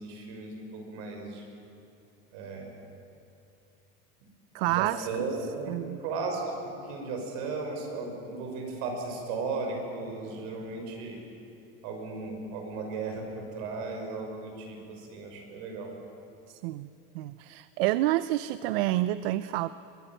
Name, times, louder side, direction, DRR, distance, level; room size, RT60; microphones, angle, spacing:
voice 1, 0.0-1.5 2.3-2.7 4.7-11.2 11.8-15.9, right 3 dB, 60° right, 2 dB, 6.0 m, -36 dB
voice 2, 4.5-5.3 5.7-6.0 16.5-16.9 17.1-19.7, right 16 dB, 80° right, 15 dB, 0.7 m, -29 dB
23.5 x 20.5 x 9.0 m, 2.8 s
cardioid pair, 170°, 29 cm